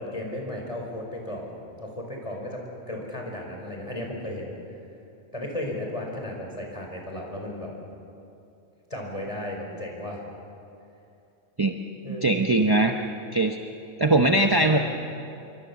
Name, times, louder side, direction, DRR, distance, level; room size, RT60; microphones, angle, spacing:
voice 1, 0.0-1.5 1.8-4.5 5.3-7.7 8.9-10.2 12.0-12.5 14.1-14.8, left 1 dB, 25° left, 0 dB, 5.0 m, -35 dB
voice 2, 12.1-12.9 13.2-13.6 14.0-14.8, right 2 dB, 20° right, 4 dB, 0.8 m, -21 dB
26.5 x 23.5 x 7.1 m, 2.7 s
omnidirectional pair, 1.4 m